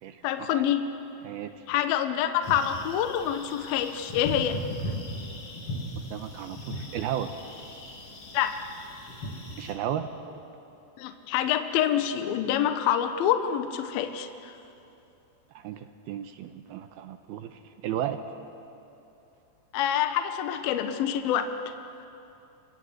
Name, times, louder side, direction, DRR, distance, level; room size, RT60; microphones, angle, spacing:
voice 1, 0.2-0.9 1.7-4.6 8.3-8.5 11.0-14.5 19.7-21.6, left 10 dB, 70° left, 8 dB, 2.5 m, -26 dB
sound 1, 2.4-9.7, left 1 dB, 35° left, 3.6 m, -38 dB
voice 2, 6.1-7.3 9.6-10.1 15.5-18.2, right 11 dB, 75° right, 8 dB, 2.5 m, -34 dB
28.0 x 23.0 x 7.9 m, 2.8 s
omnidirectional pair, 5.1 m